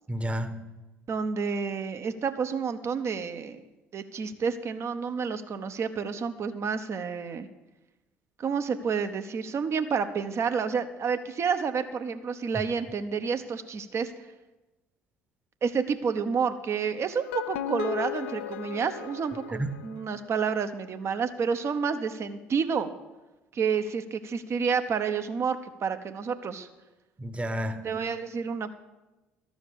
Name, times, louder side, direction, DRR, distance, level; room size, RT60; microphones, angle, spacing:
voice 1, 0.1-0.6 19.5-19.7 27.2-27.8, right 1 dB, 20° right, 10 dB, 1.1 m, -30 dB
voice 2, 1.1-3.6 3.9-7.5 8.4-14.1 15.6-22.9 23.5-26.7 27.8-28.7, right 6 dB, 45° right, 9 dB, 1.0 m, -29 dB
sound 1, 17.1-20.3, left 11 dB, 80° left, 0.5 m, -36 dB
12.5 x 5.1 x 8.7 m, 1.1 s
hypercardioid pair, 55°, 6 cm